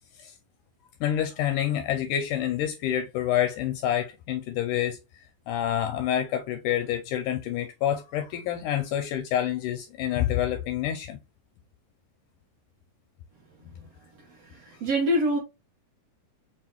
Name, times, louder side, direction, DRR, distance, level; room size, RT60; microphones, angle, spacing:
voice 1, 1.0-5.0 5.5-11.2 13.8-13.9, left 11 dB, 80° left, 1.9 m, -27 dB
voice 2, 14.5-15.4, equal, 60° right, 1.8 m, -25 dB
5.4 x 2.3 x 2.9 m
omnidirectional pair, 4.0 m